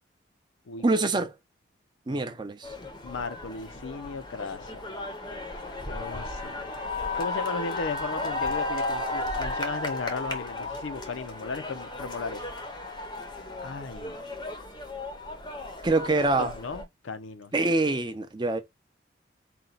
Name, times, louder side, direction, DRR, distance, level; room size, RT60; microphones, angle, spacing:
voice 1, 0.8-1.3 2.1-2.7 15.8-16.5 17.5-18.6, right 2 dB, 25° right, 0.5 m, -25 dB
sound 1, 2.6-16.8, left 2 dB, 20° left, 0.6 m, -34 dB
voice 2, 3.0-4.9 5.8-6.7 7.2-12.4 13.6-14.2 16.1-17.5, left 4 dB, 85° left, 0.5 m, -36 dB
4.2 x 2.2 x 3.9 m
head